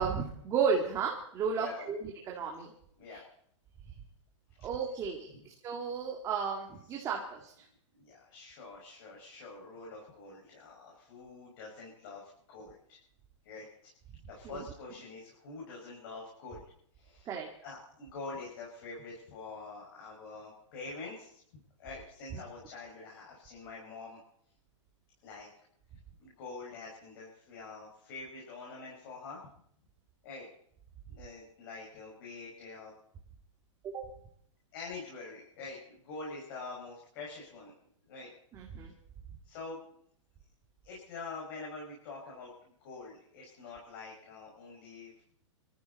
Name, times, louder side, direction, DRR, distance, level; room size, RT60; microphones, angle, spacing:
voice 1, 0.0-2.7 3.1-3.2 4.6-5.3 5.6-7.5 17.3-17.5 33.8-34.0 38.5-38.9, right 6 dB, 20° right, -1 dB, 2.0 m, -33 dB
voice 2, 1.6-1.9 3.0-3.2 4.5-4.7 8.0-13.0 13.4-13.9 14.3-16.6 16.9-17.3 17.6-24.2 25.2-25.5 26.2-29.4 30.2-30.5 31.1-32.9 34.7-37.7 38.1-38.3 39.4-39.8 40.8-45.1, left 3 dB, 45° left, -2 dB, 6.0 m, -46 dB
24.5 x 14.0 x 4.1 m, 0.67 s
hypercardioid pair, 155°, 16 cm